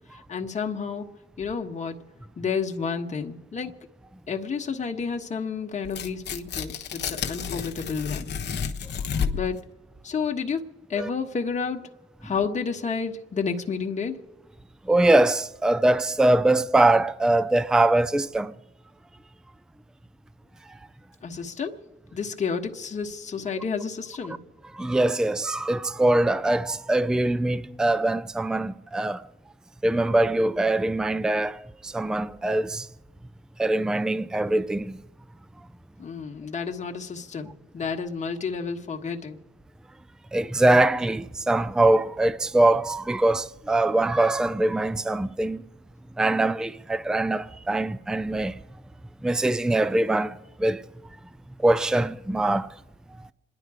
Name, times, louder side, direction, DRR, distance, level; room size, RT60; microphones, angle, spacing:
voice 1, 0.1-1.1 1.4-2.0 2.4-3.8 4.3-8.3 9.3-9.6 10.0-10.6 10.9-11.9 12.2-14.2 21.2-21.8 22.1-24.4 36.0-39.4, left 5 dB, 35° left, 1.4 m, -30 dB
Tearing, 5.8-9.6, left 6 dB, 60° left, 1.2 m, -31 dB
voice 2, 14.8-18.5 24.7-29.3 29.8-32.9 33.6-35.0 40.3-45.6 46.2-48.6 49.2-50.8 51.6-52.7 53.2-53.3, right 2 dB, 5° right, 0.5 m, -23 dB
26.5 x 11.0 x 4.9 m
cardioid pair, 90°, 20 cm